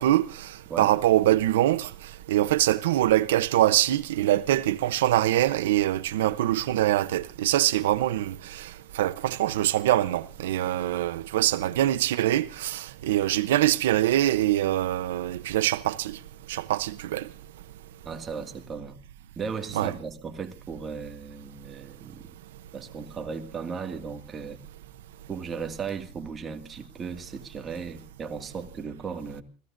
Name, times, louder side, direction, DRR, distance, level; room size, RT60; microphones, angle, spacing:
voice 1, 0.0-1.9 2.3-16.2 16.5-17.3 19.8-19.9, right 13 dB, 90° right, 0.8 m, -24 dB
voice 2, 18.0-19.0 19.4-22.3 22.7-24.6 25.3-29.4, right 5 dB, 20° right, 2.0 m, -36 dB
29.0 x 16.0 x 2.6 m
supercardioid pair, 160°, 0 cm